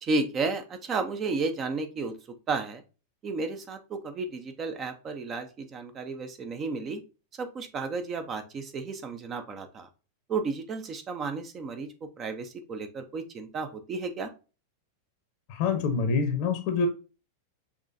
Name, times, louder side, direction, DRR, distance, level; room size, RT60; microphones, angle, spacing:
voice 1, 0.0-2.2 2.5-2.8 3.2-7.0 7.4-9.9 10.3-11.9 12.2-14.3, right 3 dB, 30° right, 0.7 m, -32 dB
voice 2, 15.5-16.9, left 5 dB, 45° left, 0.8 m, -26 dB
5.9 x 3.2 x 2.6 m
figure-of-eight pair, 90°, 0 cm